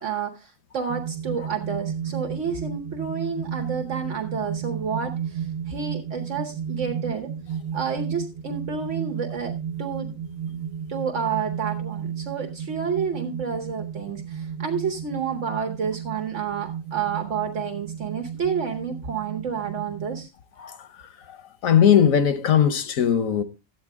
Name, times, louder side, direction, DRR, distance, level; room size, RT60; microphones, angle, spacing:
voice 1, 0.0-7.3 7.7-10.2 10.5-10.6 10.9-20.3, right 6 dB, 65° right, 1.3 m, -30 dB
sound 1, 0.9-20.3, right 8 dB, 85° right, 1.2 m, -33 dB
voice 2, 21.6-23.4, left 8 dB, 90° left, 1.3 m, -19 dB
12.5 x 8.7 x 3.5 m
omnidirectional pair, 1.4 m